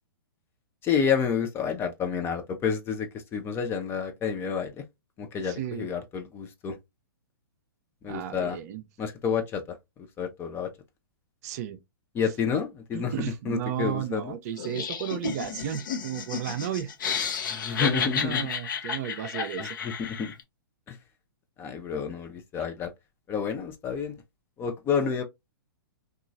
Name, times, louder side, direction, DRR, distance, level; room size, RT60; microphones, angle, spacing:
voice 1, 0.8-4.8 5.2-6.8 8.0-8.6 9.0-9.6 10.2-10.7 12.1-14.3 17.5-18.5 19.6-20.3 20.9-21.0 21.6-22.9 23.3-24.2 24.6-25.2, left 6 dB, 20° left, 0.5 m, -29 dB
voice 2, 5.5-5.9 8.0-8.8 11.4-11.8 12.9-16.9 17.8-19.8, right 10 dB, 45° right, 0.5 m, -33 dB
Laughter, 14.6-20.4, left 7 dB, 60° left, 0.8 m, -32 dB
2.9 x 2.4 x 2.6 m
figure-of-eight pair, 115°, 12 cm